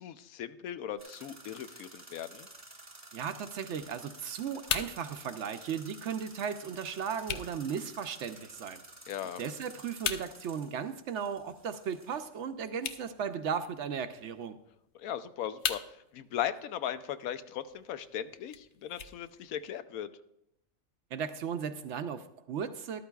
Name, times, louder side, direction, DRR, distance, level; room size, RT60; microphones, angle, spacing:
voice 1, 0.0-2.5 9.1-9.4 14.9-20.1, left 10 dB, 85° left, 12 dB, 1.1 m, -38 dB
sound 1, 1.0-12.4, right 2 dB, 15° right, 0.9 m, -52 dB
voice 2, 3.1-8.8 9.4-14.6 21.1-23.0, right 7 dB, 65° right, 10 dB, 0.8 m, -36 dB
sound 2, 3.8-19.8, left 8 dB, 65° left, 0.8 m, -43 dB
13.5 x 12.0 x 2.3 m, 0.81 s
omnidirectional pair, 1.5 m